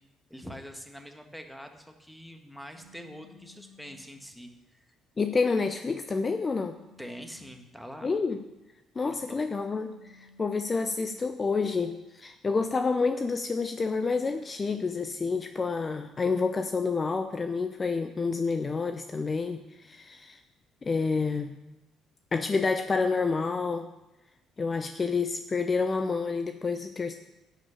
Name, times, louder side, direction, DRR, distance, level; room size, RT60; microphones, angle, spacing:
voice 1, 0.3-4.9 7.0-8.1 9.0-9.4, equal, ahead, 5 dB, 1.8 m, -45 dB
sound 1, 2.7-4.1 6.2-7.6 9.7-11.3 13.7-14.4, left 3 dB, 55° right, 1.9 m, -57 dB
voice 2, 5.2-6.8 8.0-8.4 9.0-20.4 20.8-21.5 22.3-23.9 24.6-27.1, left 4 dB, 35° left, 8 dB, 0.7 m, -29 dB
11.5 x 5.4 x 8.4 m, 1.0 s
hypercardioid pair, 55°, 0 cm